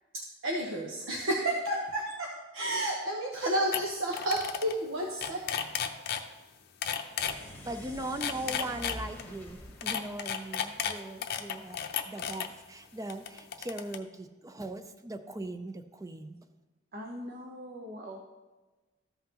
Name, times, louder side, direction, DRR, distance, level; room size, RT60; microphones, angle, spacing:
voice 1, 0.1-5.4, right 1 dB, 85° right, -1 dB, 1.0 m, -31 dB
sound 1, 3.3-3.4 3.7-3.8 4.1-4.7 5.0-6.2 6.8-7.3 8.0-9.2 9.8-12.5 13.1-14.0, left 8 dB, 50° left, 0.6 m, -33 dB
sound 2, 7.0-11.4, equal, 10° left, 1.2 m, -47 dB
voice 2, 7.6-16.4, right 1 dB, 15° right, 8 dB, 0.5 m, -39 dB
voice 3, 16.9-18.2, equal, 50° right, 1 dB, 0.9 m, -42 dB
13.5 x 5.7 x 2.9 m, 1.2 s
head